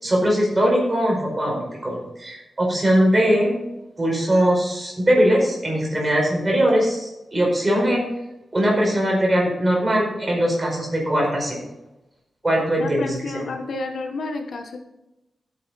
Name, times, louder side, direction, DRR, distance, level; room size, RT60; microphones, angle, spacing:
voice 1, 0.0-3.6 4.0-8.0 8.5-11.6 12.4-13.4, equal, 20° right, -1 dB, 5.1 m, -20 dB
voice 2, 12.8-14.8, left 2 dB, 65° left, 4 dB, 1.5 m, -30 dB
14.5 x 8.9 x 4.3 m, 0.94 s
wide cardioid pair, 165°, 0 cm